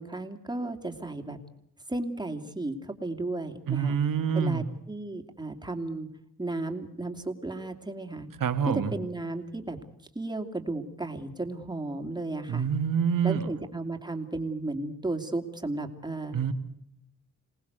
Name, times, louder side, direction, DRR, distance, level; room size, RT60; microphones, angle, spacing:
voice 1, 0.0-1.4 1.9-4.0 4.3-6.1 6.4-8.3 8.6-9.8 10.1-12.7 13.2-16.3, right 2 dB, 15° right, 5 dB, 2.8 m, -34 dB
voice 2, 3.7-4.6 8.4-8.9 12.5-13.5 16.3-16.5, right 7 dB, 80° right, 7 dB, 2.1 m, -26 dB
27.0 x 19.0 x 8.2 m, 0.77 s
cardioid pair, 100°, 32 cm